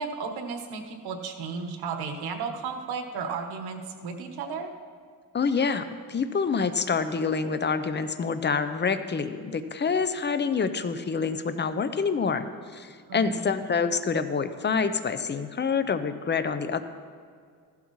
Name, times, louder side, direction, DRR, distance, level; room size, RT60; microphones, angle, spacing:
voice 1, 0.0-4.7 13.1-13.5, right 5 dB, 85° right, 5 dB, 1.3 m, -34 dB
voice 2, 5.3-12.5 12.7-16.8, left 5 dB, 30° left, 11 dB, 0.7 m, -27 dB
15.0 x 12.0 x 3.2 m, 2.1 s
cardioid pair, 95°, 37 cm